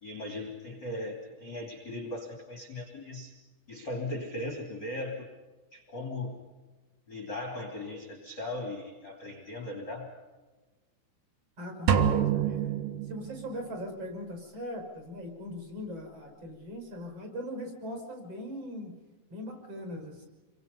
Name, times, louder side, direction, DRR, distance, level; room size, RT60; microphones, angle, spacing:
voice 1, 0.0-3.3 3.7-5.3 5.7-6.3 7.1-10.1, left 2 dB, 30° left, 3 dB, 2.8 m, -38 dB
voice 2, 11.6-19.0 19.3-20.2, equal, 30° right, 4 dB, 6.4 m, -40 dB
sound 1, 11.9-13.7, right 8 dB, 60° right, 2.4 m, -27 dB
28.5 x 24.5 x 5.5 m, 1.2 s
omnidirectional pair, 5.6 m